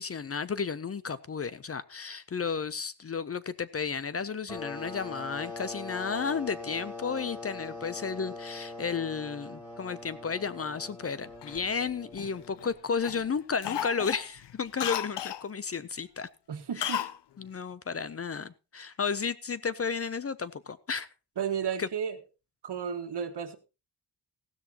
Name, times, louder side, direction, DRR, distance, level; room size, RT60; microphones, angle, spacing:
voice 1, 0.0-16.3 16.8-17.0 17.4-21.1 21.8-21.9, left 5 dB, 35° left, 0.5 m, -33 dB
sound 1, 4.5-12.9, left 3 dB, 10° left, 5.7 m, -42 dB
Cough, 11.4-12.7 13.0-13.3 13.6-15.4 16.8-17.2 17.4-17.5, left 12 dB, 85° left, 0.6 m, -34 dB
voice 2, 16.5-17.1 21.4-22.2 22.6-23.6, right 7 dB, 70° right, 1.6 m, -33 dB
15.5 x 13.0 x 2.8 m
wide cardioid pair, 165°, 41 cm